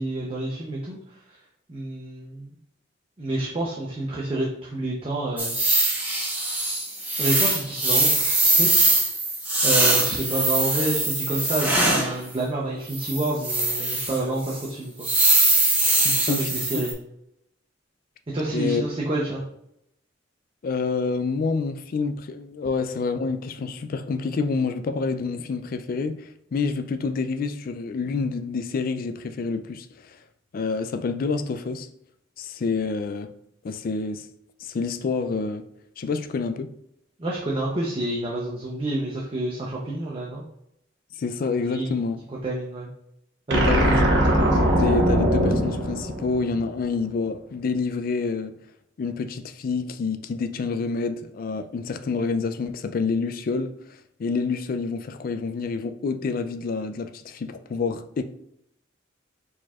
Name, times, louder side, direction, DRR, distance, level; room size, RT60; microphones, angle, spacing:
voice 1, 0.0-1.4 1.7-2.5 3.2-5.5 7.2-8.7 9.6-15.1 16.0-16.9 18.3-19.4 37.2-40.4 41.7-41.9 42.4-42.9 43.5-43.9, right 2 dB, 30° right, 0.7 m, -28 dB
sound 1, 5.4-12.1 12.9-14.2 14.5-14.6 15.0-16.9, right 2 dB, 10° right, 1.0 m, -22 dB
voice 2, 16.3-16.8 18.5-18.8 20.6-30.2 30.5-31.9 32.4-33.3 33.6-34.3 34.6-35.7 36.0-36.7 41.2-42.2 43.5-44.0 44.8-48.5 49.0-53.7 54.2-58.2, left 4 dB, 50° left, 0.3 m, -28 dB
sound 2, 43.5-46.8, equal, 65° right, 1.0 m, -21 dB
4.7 x 4.2 x 2.4 m
head